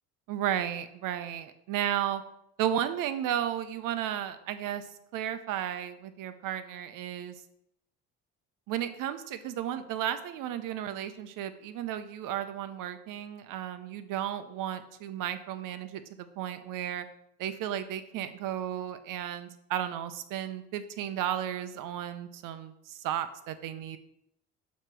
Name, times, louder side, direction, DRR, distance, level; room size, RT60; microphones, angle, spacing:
voice 1, 0.3-2.2 2.6-4.9 5.1-7.4 8.7-17.1 17.4-24.0, right 10 dB, 65° right, 11 dB, 0.7 m, -34 dB
6.6 x 3.1 x 5.9 m, 0.78 s
supercardioid pair, 75°, 35 cm